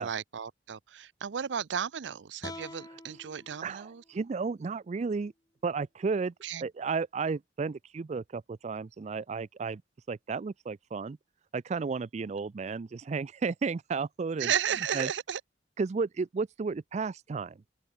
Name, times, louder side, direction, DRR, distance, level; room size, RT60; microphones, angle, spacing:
voice 1, 0.0-4.0 6.4-6.7 14.4-15.4, right 8 dB, 90° right, 0.5 m, -34 dB
sound 1, 2.4-5.6, left 2 dB, 20° left, 3.4 m, -48 dB
voice 2, 3.6-5.3 5.6-6.3 6.6-9.8 10.1-11.2 11.5-14.5 14.9-15.1 15.8-17.6, right 4 dB, 40° right, 0.4 m, -33 dB
open air
head